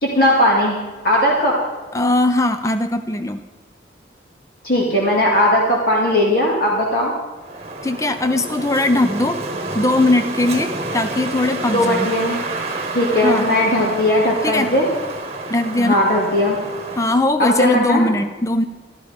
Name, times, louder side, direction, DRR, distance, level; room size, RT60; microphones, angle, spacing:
voice 1, 0.0-0.8 1.0-1.6 4.6-7.1 11.7-12.4 12.9-14.9 15.8-16.6 17.4-18.0, left 1 dB, 50° left, -3 dB, 2.2 m, -17 dB
voice 2, 1.9-3.4 7.8-9.4 9.7-12.1 13.2-13.6 14.4-14.7 15.5-16.0 17.0-18.6, left 2 dB, 15° left, 9 dB, 0.4 m, -19 dB
Wind, 7.4-17.3, right 2 dB, 35° right, 1.2 m, -29 dB
13.0 x 12.5 x 5.1 m, 1.4 s
head